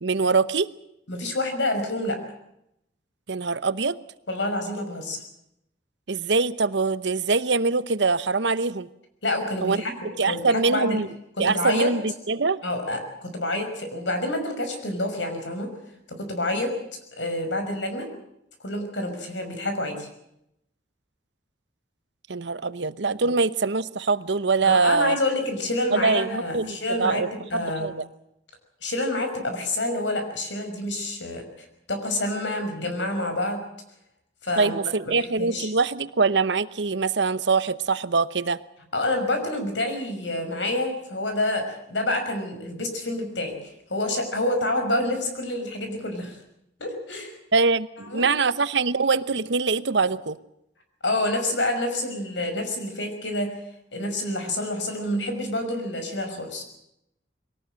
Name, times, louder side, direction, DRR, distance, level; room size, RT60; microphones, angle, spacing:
voice 1, 0.0-0.7 3.3-4.0 6.1-8.9 9.6-9.8 10.2-11.1 11.4-12.6 22.3-25.2 25.9-28.0 34.6-38.6 47.5-50.4, right 4 dB, 75° right, 15 dB, 0.9 m, -23 dB
voice 2, 1.1-2.2 4.3-5.2 9.2-11.0 11.4-11.9 12.6-15.7 16.1-16.7 17.2-18.1 18.6-20.1 24.6-27.2 27.5-27.9 28.8-31.4 31.9-33.7 34.4-34.7 35.2-35.7 38.9-46.4 46.8-47.4 48.1-48.3 51.0-53.5 53.9-56.6, left 1 dB, 85° left, 6 dB, 5.8 m, -28 dB
22.5 x 18.5 x 7.7 m, 0.79 s
head